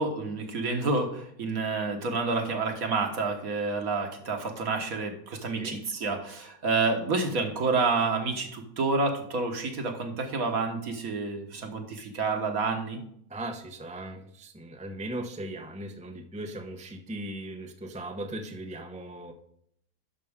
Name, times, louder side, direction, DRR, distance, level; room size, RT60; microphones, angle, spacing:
voice 1, 0.0-13.0, right 3 dB, 65° right, 4 dB, 1.7 m, -29 dB
voice 2, 13.3-19.3, right 1 dB, 10° right, 4 dB, 0.5 m, -38 dB
11.0 x 5.8 x 3.6 m, 0.69 s
omnidirectional pair, 1.7 m